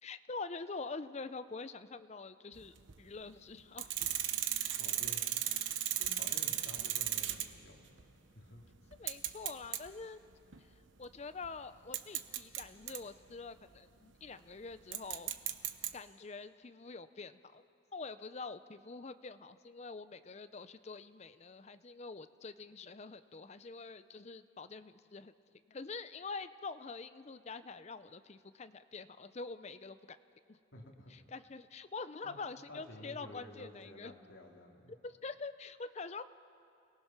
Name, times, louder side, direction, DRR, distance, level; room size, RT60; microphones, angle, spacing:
voice 1, 0.0-3.9 9.0-10.2 11.0-15.3 15.9-17.6 17.9-25.3 25.7-30.2 30.5-30.6 31.1-34.1 35.0-36.3, left 4 dB, 35° left, 12 dB, 0.5 m, -45 dB
sound 1, 2.6-3.0 3.8-7.7 8.0-8.1 8.9-9.9 10.3-10.6 11.4-11.5 11.9-13.0 14.9-15.9, right 12 dB, 65° right, 0.9 m, -35 dB
voice 2, 4.8-5.5 6.0-7.9 8.3-8.7 30.7-31.1 32.2-32.4 32.7-34.9, left 1 dB, 85° left, -1 dB, 2.9 m, -52 dB
29.0 x 18.5 x 5.9 m, 2.5 s
head